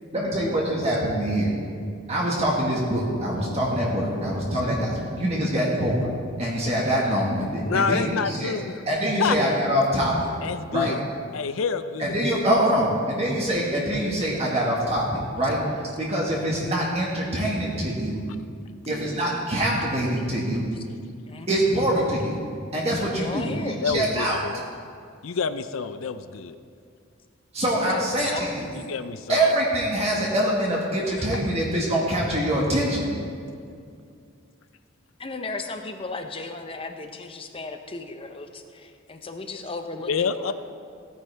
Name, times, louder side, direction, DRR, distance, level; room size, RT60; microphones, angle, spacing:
voice 1, 0.1-1.5 2.1-6.1 6.4-8.6 8.9-10.3 10.7-10.9 12.0-18.2 18.9-20.7 21.5-22.4 22.7-24.4 27.5-28.7 29.3-33.1, right 1 dB, 30° right, -4 dB, 1.6 m, -24 dB
voice 2, 7.6-8.8 9.2-9.4 10.4-11.0 11.3-12.2 23.8-24.6 25.2-26.6 28.7-29.5 31.2-31.4 40.1-40.5, left 5 dB, 85° left, 12 dB, 0.5 m, -28 dB
voice 3, 23.1-23.8 27.9-28.5 35.2-40.1 40.4-40.5, left 3 dB, 25° left, 6 dB, 0.7 m, -35 dB
16.0 x 9.1 x 3.4 m, 2.3 s
head